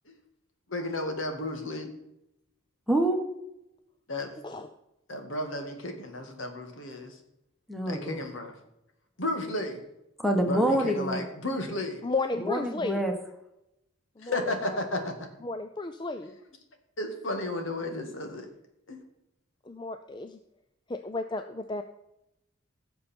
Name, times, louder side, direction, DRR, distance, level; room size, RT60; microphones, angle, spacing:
voice 1, 0.7-1.9 4.1-4.3 5.1-7.2 7.9-8.5 9.2-9.8 10.4-12.0 14.2-15.1 16.3-16.4 17.0-18.5 18.9-19.0, left 1 dB, 75° left, 5 dB, 2.0 m, -33 dB
voice 2, 2.9-3.2 7.7-8.2 10.2-11.2 12.4-13.1, right 1 dB, ahead, 3 dB, 1.3 m, -26 dB
voice 3, 12.0-13.0 14.2-14.8 15.4-16.3 19.7-20.4 20.9-21.8, left 3 dB, 25° left, 8 dB, 0.5 m, -33 dB
16.5 x 7.0 x 4.4 m, 0.87 s
head